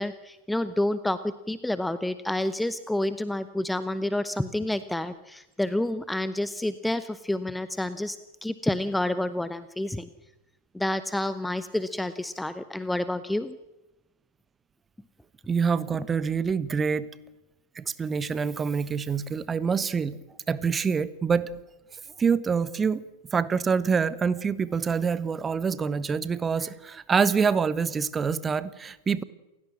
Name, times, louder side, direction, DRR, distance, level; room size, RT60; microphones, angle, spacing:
voice 1, 0.0-10.1 10.7-13.6, left 1 dB, 5° left, 14 dB, 0.8 m, -29 dB
voice 2, 15.5-17.1 17.7-20.2 20.5-21.4 22.2-23.0 23.3-29.2, right 6 dB, 20° right, 16 dB, 1.1 m, -26 dB
28.5 x 16.0 x 7.5 m, 1.0 s
figure-of-eight pair, 90°, 0 cm